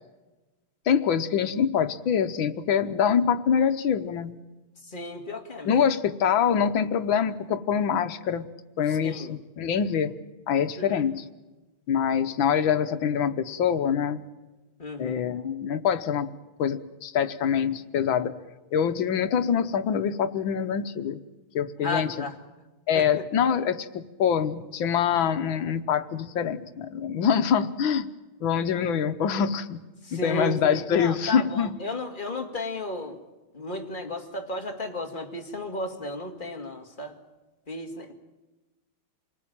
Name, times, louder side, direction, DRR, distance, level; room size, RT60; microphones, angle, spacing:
voice 1, 0.9-4.3 5.7-8.5 8.8-10.1 10.5-11.3 11.9-14.2 15.0-16.3 16.6-18.3 18.7-21.2 21.5-22.2 22.9-28.1 28.4-29.8 30.1-31.8, left 7 dB, 75° left, 9 dB, 1.9 m, -25 dB
voice 2, 4.8-5.9 8.9-9.4 10.8-11.1 14.8-15.2 21.8-22.4 22.9-23.2 30.0-33.2 33.5-37.2 37.7-38.1, left 2 dB, 25° left, 3 dB, 2.3 m, -34 dB
27.5 x 19.0 x 8.9 m, 1.2 s
omnidirectional pair, 2.2 m